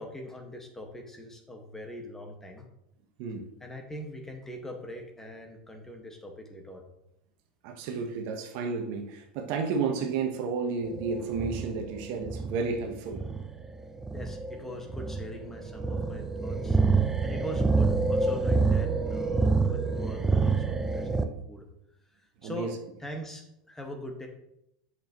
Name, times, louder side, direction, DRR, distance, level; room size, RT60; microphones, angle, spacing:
voice 1, 0.0-2.7 3.6-6.9 14.1-21.7 22.1-22.7 23.0-24.3, left 1 dB, 10° left, 2 dB, 1.7 m, -42 dB
voice 2, 7.6-13.3 22.4-22.7, right 5 dB, 55° right, 4 dB, 1.2 m, -32 dB
sound 1, 10.8-21.2, right 4 dB, 10° right, 0.6 m, -27 dB
8.1 x 6.1 x 3.1 m, 0.80 s
hypercardioid pair, 90°, 4 cm